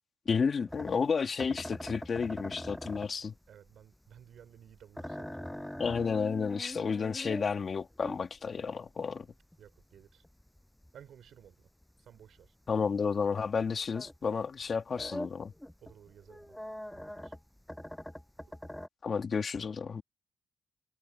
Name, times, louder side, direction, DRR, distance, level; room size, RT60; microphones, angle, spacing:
voice 1, 0.3-3.3 5.8-9.3 12.7-15.5 19.0-20.0, left 5 dB, 40° left, 2.1 m, -31 dB
sound 1, 0.7-14.3 14.6-18.9, left 1 dB, 5° left, 7.9 m, -43 dB
voice 2, 3.5-5.7 9.6-10.2 10.9-11.5 12.0-12.5 14.7-14.8 15.8-16.6 16.9-17.3, right 9 dB, 65° right, 3.8 m, -55 dB
cardioid pair, 90°, 0 cm